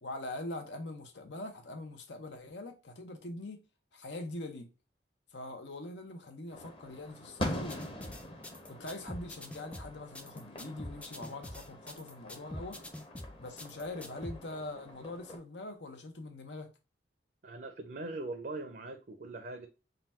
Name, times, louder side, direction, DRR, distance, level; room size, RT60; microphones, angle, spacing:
voice 1, 0.0-3.6 3.9-4.7 5.3-8.2 8.7-12.8 13.4-16.7, left 2 dB, 85° left, 0.9 m, -43 dB
sound 1, 6.5-15.4, left 1 dB, 30° left, 0.8 m, -44 dB
sound 2, 7.7-14.4, left 1 dB, 5° left, 0.3 m, -45 dB
voice 2, 17.4-19.7, right 2 dB, 55° right, 0.5 m, -41 dB
3.8 x 2.3 x 4.2 m
head